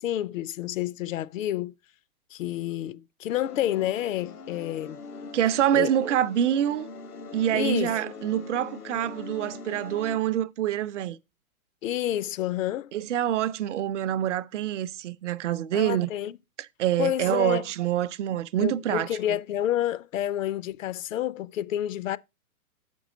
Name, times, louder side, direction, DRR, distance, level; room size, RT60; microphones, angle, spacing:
voice 1, 0.0-1.7 2.3-5.0 5.7-5.9 7.5-8.0 11.8-12.9 15.7-16.4 17.0-17.7 18.6-22.2, left 12 dB, 65° left, 0.5 m, -29 dB
sound 1, 3.3-10.2, left 4 dB, 85° left, 1.2 m, -42 dB
voice 2, 5.3-6.9 7.3-11.2 12.9-16.1 16.6-19.1, right 11 dB, 55° right, 0.5 m, -26 dB
6.9 x 5.3 x 4.9 m
hypercardioid pair, 135°, 44 cm